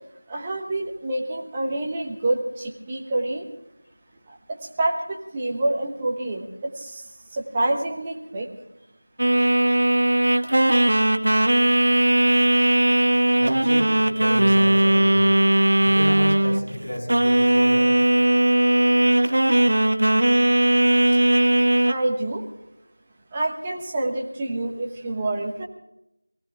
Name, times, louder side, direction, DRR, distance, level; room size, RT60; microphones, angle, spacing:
voice 1, 0.3-3.5 4.3-7.0 7.3-8.5 12.8-13.2 21.8-22.4 23.3-25.6, right 2 dB, 10° right, -1 dB, 1.2 m, -27 dB
sound 1, 9.2-16.7 17.1-21.9, right 1 dB, 50° right, 1.2 m, -18 dB
voice 2, 13.4-15.4 15.8-17.9, equal, 15° left, -10 dB, 7.3 m, -31 dB
23.0 x 16.5 x 3.6 m, 0.84 s
figure-of-eight pair, 175°, 0 cm